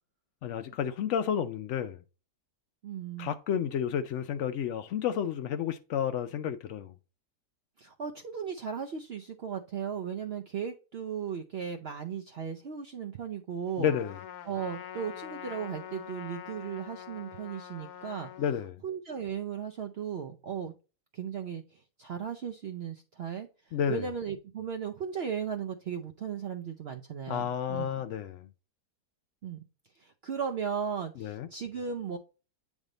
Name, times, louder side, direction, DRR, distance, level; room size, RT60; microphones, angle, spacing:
voice 1, 0.4-2.0 3.2-6.9 13.8-14.2 18.4-18.8 23.7-24.1 27.3-28.5 31.2-31.5, left 8 dB, 85° left, 0.6 m, -31 dB
voice 2, 2.8-3.3 7.8-13.9 14.5-18.3 18.8-20.7 21.1-28.0 29.4-29.6 30.0-32.2, right 7 dB, 80° right, 0.5 m, -36 dB
Trumpet, 13.9-18.6, left 10 dB, 70° left, 1.1 m, -44 dB
8.3 x 3.6 x 3.8 m
omnidirectional pair, 1.8 m